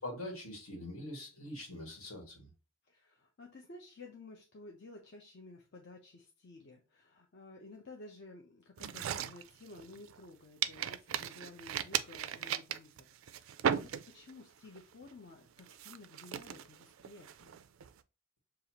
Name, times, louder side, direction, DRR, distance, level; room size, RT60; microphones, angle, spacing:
voice 1, 0.0-2.5, left 1 dB, 75° left, 1.8 m, -43 dB
voice 2, 2.8-17.6, left 2 dB, 50° left, 0.6 m, -53 dB
sound 1, 8.8-10.3 10.6-14.4 14.8-15.1 15.6-17.9, right 9 dB, 65° right, 0.3 m, -37 dB
6.7 x 2.4 x 2.8 m
head